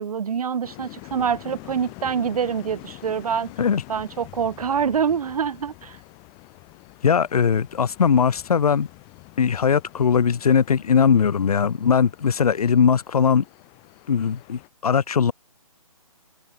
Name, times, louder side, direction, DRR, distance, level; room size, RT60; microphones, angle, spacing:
voice 1, 0.0-3.5 3.9-6.0, right 7 dB, 75° right, 0.5 m, -25 dB
sound 1, 0.6-14.7, left 33 dB, 20° left, 2.0 m, -45 dB
voice 2, 7.0-8.9 9.4-13.4 14.1-15.3, left 6 dB, 80° left, 0.5 m, -20 dB
figure-of-eight pair, 145°, 19 cm